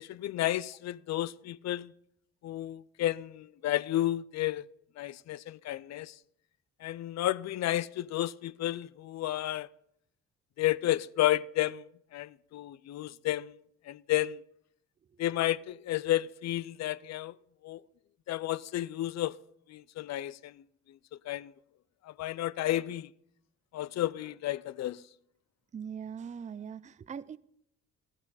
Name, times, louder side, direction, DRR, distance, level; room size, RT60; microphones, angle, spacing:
voice 1, 0.0-1.9 2.4-4.6 5.0-6.1 6.8-9.7 10.6-11.8 12.1-13.6 13.9-14.4 15.2-17.3 17.6-17.8 18.3-19.4 19.7-20.5 21.3-21.5 22.1-23.1 23.7-25.0, left 14 dB, 60° left, 0.5 m, -32 dB
voice 2, 25.7-27.4, right 7 dB, 25° right, 0.4 m, -41 dB
15.0 x 12.5 x 4.1 m
cardioid pair, 90°, 30 cm